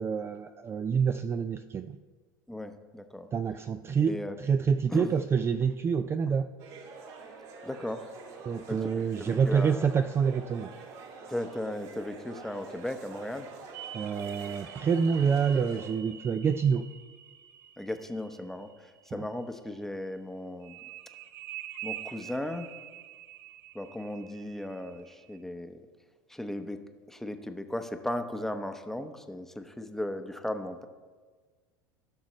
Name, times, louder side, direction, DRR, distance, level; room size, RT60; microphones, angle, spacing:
voice 1, 0.0-2.0 3.3-6.5 8.5-10.7 13.9-16.9 19.1-19.3, right 6 dB, 25° right, 9 dB, 0.3 m, -27 dB
voice 2, 2.5-3.3 4.1-4.4 4.9-5.1 7.6-8.1 8.7-8.9 9.2-9.9 11.3-13.5 17.8-20.8 21.8-22.7 23.7-25.8 26.3-30.9, left 1 dB, 5° left, 7 dB, 0.8 m, -36 dB
sound 1, 6.6-15.9, right 4 dB, 60° right, 2.2 m, -47 dB
sound 2, 13.7-19.3 20.6-25.4, right 11 dB, 80° right, 0.6 m, -46 dB
16.0 x 6.2 x 3.1 m, 1.5 s
hypercardioid pair, 90°, 10 cm